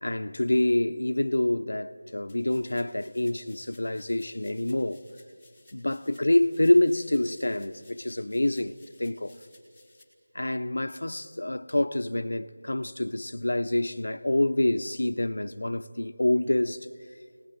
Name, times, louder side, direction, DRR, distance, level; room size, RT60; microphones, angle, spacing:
voice 1, 0.0-5.0 5.7-9.4 10.3-16.9, left 1 dB, 90° left, 1.2 m, -26 dB
sound 1, 2.3-10.0, left 2 dB, ahead, 2.4 m, -59 dB
26.5 x 19.5 x 9.2 m
figure-of-eight pair, 180°, 0 cm